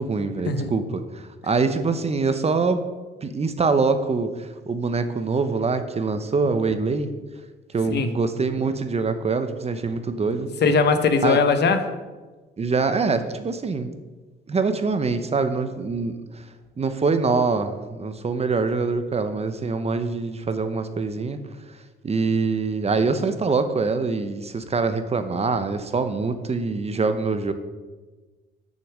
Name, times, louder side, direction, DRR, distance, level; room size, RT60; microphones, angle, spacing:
voice 1, 0.0-2.8 3.2-7.1 7.7-10.5 11.2-11.4 12.6-13.9 14.5-16.2 16.8-21.4 22.0-27.5, right 4 dB, 30° right, 9 dB, 0.8 m, -24 dB
voice 2, 10.6-11.9, left 4 dB, 60° left, 9 dB, 0.9 m, -20 dB
6.7 x 6.5 x 6.1 m, 1.3 s
cardioid pair, 90°, 20 cm